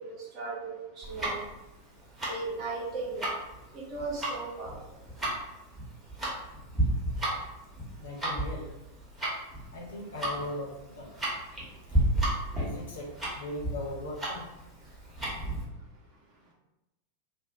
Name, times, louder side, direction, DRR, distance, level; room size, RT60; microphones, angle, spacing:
voice 1, 0.0-1.5 2.2-3.3 3.7-5.0 12.3-12.5, right 3 dB, 35° right, -5 dB, 0.8 m, -37 dB
Tick-tock, 1.0-15.6, right 1 dB, 10° right, 0.9 m, -33 dB
voice 2, 8.0-8.7 9.7-11.1 12.6-14.4, left 2 dB, 60° left, -2 dB, 0.6 m, -39 dB
2.5 x 2.0 x 2.6 m, 0.98 s
figure-of-eight pair, 90°, 0 cm